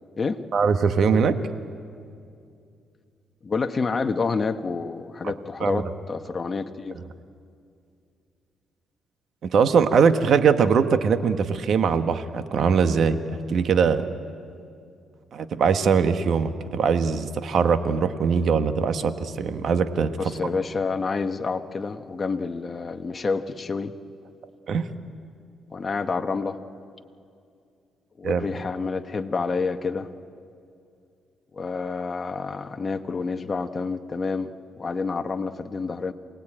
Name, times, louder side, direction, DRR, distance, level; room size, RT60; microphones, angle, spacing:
voice 1, 0.5-1.4 5.6-5.8 9.5-13.2 13.5-14.0 15.3-20.2 24.7-24.9 28.2-28.5, right 6 dB, 60° right, 9 dB, 1.3 m, -21 dB
voice 2, 3.4-7.0 20.2-23.9 25.7-26.6 28.2-30.1 31.5-36.1, left 4 dB, 35° left, 7 dB, 1.2 m, -28 dB
27.5 x 19.0 x 8.9 m, 2.4 s
cardioid pair, 90°, 0 cm